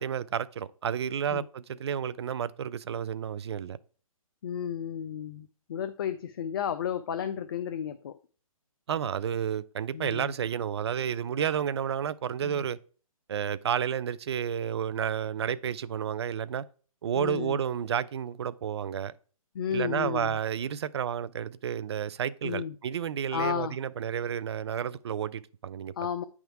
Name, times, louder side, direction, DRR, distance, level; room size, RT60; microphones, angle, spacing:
voice 1, 0.0-3.8 8.9-12.8 13.3-16.6 17.0-19.1 19.7-25.9, right 8 dB, 45° right, 0.4 m, -31 dB
voice 2, 4.4-8.2 9.9-10.3 12.4-12.7 17.2-17.6 19.5-20.4 22.4-22.7 23.3-23.7 26.0-26.2, left 9 dB, 40° left, 0.4 m, -33 dB
8.8 x 3.6 x 4.6 m
figure-of-eight pair, 140°, 18 cm